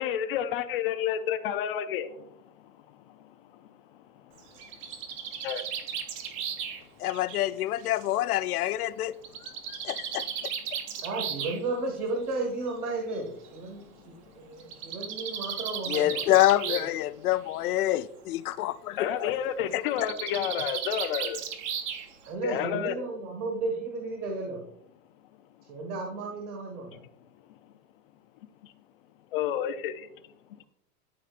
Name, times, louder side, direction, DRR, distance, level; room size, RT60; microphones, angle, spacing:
voice 1, 0.0-2.1 5.4-5.6 19.0-21.4 22.4-22.9 29.3-30.0, left 9 dB, 40° left, 0.4 m, -30 dB
Bird, 4.4-8.2 9.2-11.6 12.7-12.8 13.1-13.2 13.4-13.5 14.6-17.0 17.3-17.8 19.9-22.3, right 8 dB, 25° right, 0.4 m, -35 dB
voice 2, 7.0-9.1 9.7-10.3 15.9-19.3, left 15 dB, 90° left, 0.6 m, -26 dB
voice 3, 11.0-16.3 16.7-16.9 22.2-24.6 25.7-27.0, right 3 dB, 90° right, 1.8 m, -34 dB
12.5 x 4.4 x 2.5 m
supercardioid pair, 150°, 43 cm